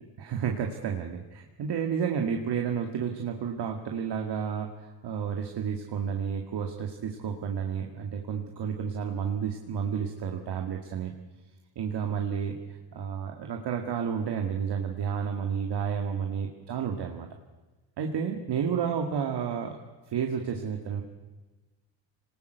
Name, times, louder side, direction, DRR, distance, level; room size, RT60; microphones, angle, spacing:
voice 1, 0.2-1.2 1.6-4.7 5.0-11.1 11.8-12.6 12.9-17.3 18.0-19.8 20.1-21.0, right 7 dB, 50° right, 3 dB, 2.2 m, -31 dB
26.5 x 19.5 x 8.1 m, 1.2 s
cardioid pair, 100°, 50 cm